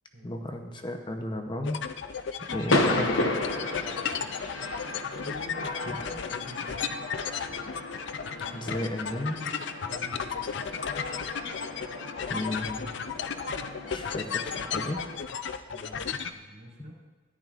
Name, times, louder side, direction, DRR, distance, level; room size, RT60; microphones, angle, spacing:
voice 1, 0.2-1.8 2.5-3.4 5.9-6.0 8.5-9.5 12.3-12.9 13.9-15.0, left 1 dB, 25° left, 4 dB, 0.7 m, -33 dB
sound 1, 1.6-16.3, left 6 dB, 65° left, 0.5 m, -34 dB
sound 2, 2.5-15.2, left 2 dB, 85° left, 0.9 m, -34 dB
voice 2, 3.8-4.2 5.1-7.0 9.8-10.5 15.7-17.0, equal, 85° right, -3 dB, 3.1 m, -47 dB
14.0 x 10.5 x 2.5 m, 1.2 s
head